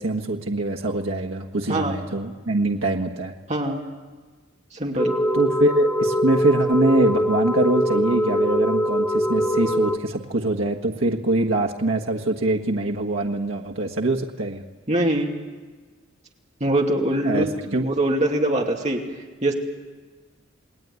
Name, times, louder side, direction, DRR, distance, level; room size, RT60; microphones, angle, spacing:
voice 1, 0.0-3.3 5.3-14.6 17.2-17.5 17.7-17.8, right 2 dB, 80° right, 0 dB, 1.5 m, -23 dB
voice 2, 3.5-3.8 4.7-5.1 14.9-15.3 16.6-17.5 17.8-19.0 19.4-19.5, right 1 dB, 35° right, 1 dB, 2.6 m, -23 dB
sound 1, 5.0-10.0, equal, 10° left, 1.0 m, -22 dB
29.0 x 20.5 x 9.6 m, 1.4 s
head